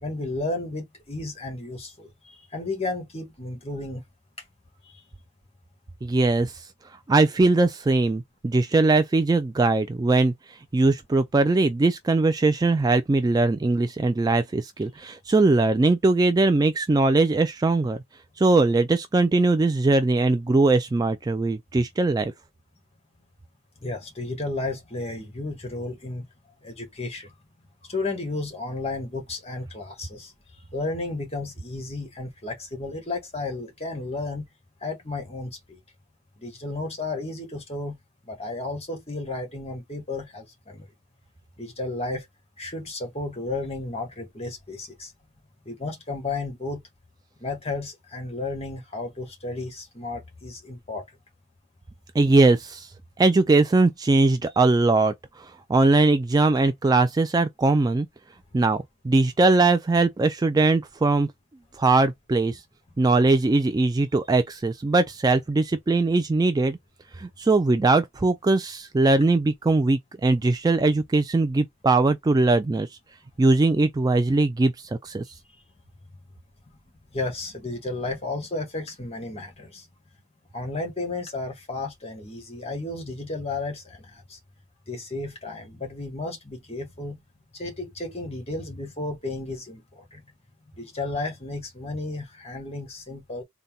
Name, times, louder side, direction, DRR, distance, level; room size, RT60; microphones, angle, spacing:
voice 1, 0.0-4.0 4.9-5.0 23.8-26.3 26.6-27.3 27.9-34.5 34.8-35.8 36.4-38.0 38.2-40.9 41.6-42.3 42.6-45.1 45.6-46.8 47.4-51.0 77.1-79.9 80.5-84.4 84.9-87.2 87.5-90.2 90.7-93.4, left 2 dB, 30° left, 1.6 m, -33 dB
voice 2, 6.0-6.6 7.1-10.3 10.7-18.0 18.4-22.3 52.1-52.9 53.2-58.1 58.5-61.3 61.8-62.6 63.0-66.8 67.2-72.9 73.4-74.7 75.0-75.2, right 3 dB, 20° right, 0.3 m, -21 dB
4.0 x 2.2 x 3.7 m
head